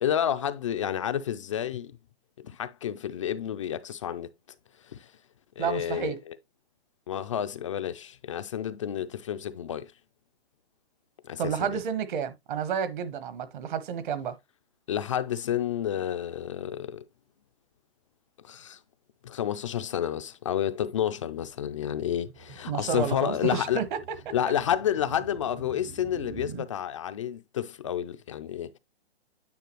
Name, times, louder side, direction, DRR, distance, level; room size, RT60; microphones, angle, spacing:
voice 1, 0.0-2.0 2.4-4.3 4.8-5.1 5.6-6.3 7.1-9.9 11.2-11.8 14.9-17.0 18.4-18.8 19.2-23.8 24.3-28.8, left 10 dB, 30° left, 0.4 m, -30 dB
voice 2, 5.6-6.2 11.4-14.4 22.7-23.8 24.3-24.4, right 7 dB, 50° right, 1.2 m, -30 dB
sound 1, 21.4-26.7, right 7 dB, 20° right, 0.6 m, -46 dB
9.4 x 4.8 x 3.1 m
hypercardioid pair, 150°, 31 cm